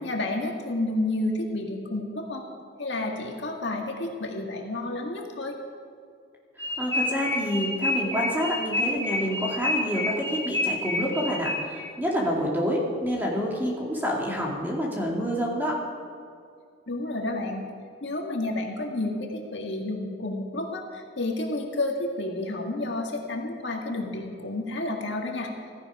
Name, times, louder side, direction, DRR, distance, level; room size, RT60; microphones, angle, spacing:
voice 1, 0.0-2.5 2.8-5.6 16.9-17.6 18.0-25.5, left 2 dB, 65° left, 1 dB, 1.9 m, -30 dB
sound 1, 6.6-11.9, left 1 dB, 15° left, 1.3 m, -28 dB
voice 2, 6.6-15.8, equal, 10° right, -2 dB, 2.4 m, -28 dB
16.0 x 14.5 x 4.9 m, 2.3 s
head